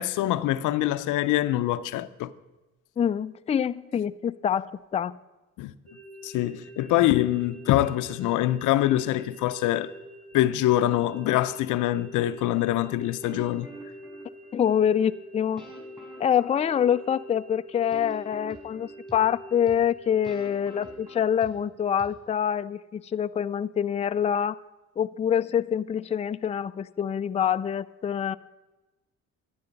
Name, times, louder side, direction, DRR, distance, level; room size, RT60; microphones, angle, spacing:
voice 1, 0.0-2.3 5.6-5.7 6.2-9.9 10.3-13.7, left 14 dB, 90° left, 0.6 m, -24 dB
voice 2, 3.0-5.2 14.5-15.6 16.2-24.6 25.0-28.4, left 8 dB, 20° left, 0.3 m, -26 dB
sound 1, 5.9-21.3, equal, 50° right, 3.7 m, -45 dB
sound 2, 13.2-14.6 15.6-17.3 17.9-19.2 19.7-19.8 20.2-21.6 22.0-22.1, right 2 dB, 15° right, 4.6 m, -45 dB
12.0 x 9.6 x 5.2 m
cardioid pair, 90°, 30 cm